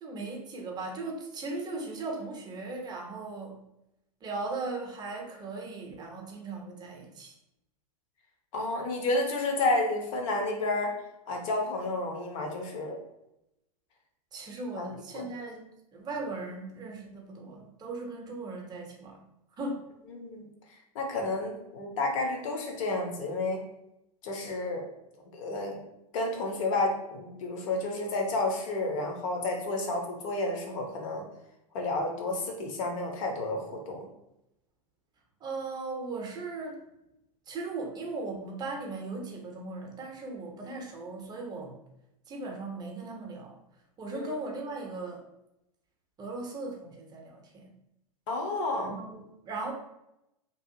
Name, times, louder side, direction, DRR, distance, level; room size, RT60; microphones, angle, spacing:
voice 1, 0.0-3.6 4.2-7.3 14.3-15.6 15.9-19.2 19.6-19.9 35.4-36.8 37.5-41.8 42.3-43.5 44.0-45.2 46.2-47.7 48.8-49.7, right 3 dB, 20° right, 1 dB, 0.6 m, -38 dB
voice 2, 8.5-10.9 11.3-13.0 14.8-15.3 20.1-20.4 20.9-23.6 24.2-24.8 25.3-25.8 26.1-31.2 31.7-34.1 44.1-44.4 48.3-48.9, left 2 dB, 55° left, 2 dB, 0.8 m, -31 dB
2.7 x 2.4 x 2.7 m, 0.85 s
hypercardioid pair, 95°, 20 cm